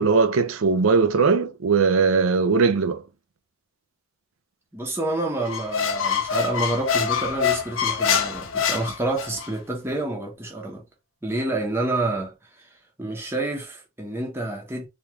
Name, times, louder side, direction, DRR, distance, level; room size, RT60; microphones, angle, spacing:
voice 1, 0.0-3.0, right 4 dB, 80° right, 0.5 m, -19 dB
voice 2, 4.7-10.8 11.2-12.7 13.0-14.9, right 2 dB, 10° right, 0.8 m, -28 dB
Squeak, 5.4-9.5, left 7 dB, 70° left, 0.6 m, -25 dB
3.5 x 2.4 x 3.0 m
head